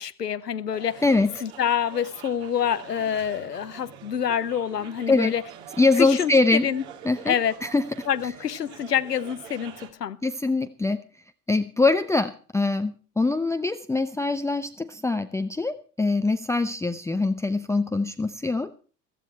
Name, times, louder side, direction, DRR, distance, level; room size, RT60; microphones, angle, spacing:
voice 1, 0.0-1.0 1.4-5.4 6.0-6.8 7.3-7.5 8.1-10.2, left 8 dB, 85° left, 0.8 m, -27 dB
sound 1, 0.7-9.9, right 9 dB, 55° right, 2.4 m, -45 dB
voice 2, 5.8-6.6 7.0-7.3 7.6-7.8 10.2-11.0 11.5-18.7, left 3 dB, 5° left, 0.6 m, -23 dB
15.0 x 14.5 x 4.4 m
figure-of-eight pair, 70°, 47 cm